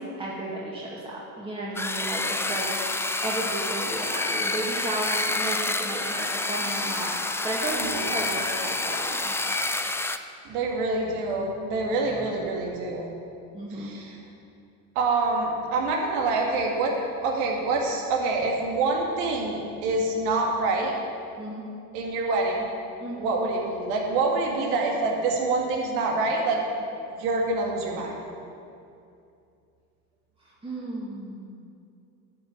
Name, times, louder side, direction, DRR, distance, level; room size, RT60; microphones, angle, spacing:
voice 1, 0.0-2.7 3.2-9.3 13.5-13.9 21.4-21.6 23.0-23.2 30.6-31.6, right 1 dB, 10° right, -6 dB, 2.1 m, -33 dB
sound 1, 1.8-10.2, left 2 dB, 5° left, 0.4 m, -28 dB
voice 2, 7.7-8.1 10.4-13.1 13.7-14.2 15.0-20.9 21.9-22.7 23.1-26.6 27.2-28.2, right 3 dB, 80° right, 0 dB, 2.2 m, -26 dB
11.5 x 6.2 x 8.1 m, 2.5 s
hypercardioid pair, 80°, 45 cm